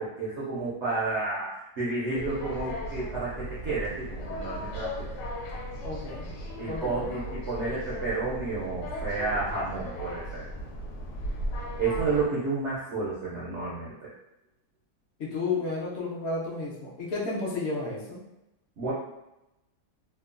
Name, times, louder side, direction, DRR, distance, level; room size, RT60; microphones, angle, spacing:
voice 1, 0.0-4.9 6.6-10.4 11.8-14.1 18.8-18.9, right 3 dB, 75° right, -7 dB, 0.6 m, -31 dB
sound 1, 2.1-12.3, equal, 85° left, 1.2 m, -36 dB
voice 2, 5.8-6.3 6.6-7.1 15.2-18.2, left 3 dB, 60° left, -4 dB, 0.7 m, -32 dB
2.9 x 2.1 x 2.4 m, 0.90 s
omnidirectional pair, 1.9 m